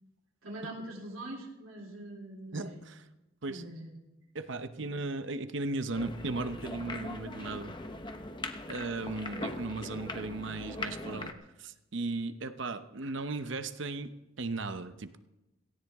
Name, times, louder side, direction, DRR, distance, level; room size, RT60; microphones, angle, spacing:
voice 1, 0.4-2.8 3.5-3.9 4.7-5.0, right 1 dB, 80° right, -2 dB, 3.1 m, -43 dB
voice 2, 2.5-3.0 3.4-3.6 4.3-7.7 8.7-11.3 11.6-14.1 14.4-15.2, right 3 dB, 60° right, 10 dB, 0.8 m, -36 dB
sound 1, 5.9-11.3, left 2 dB, 20° left, 0.9 m, -40 dB
17.5 x 16.0 x 3.6 m, 0.98 s
head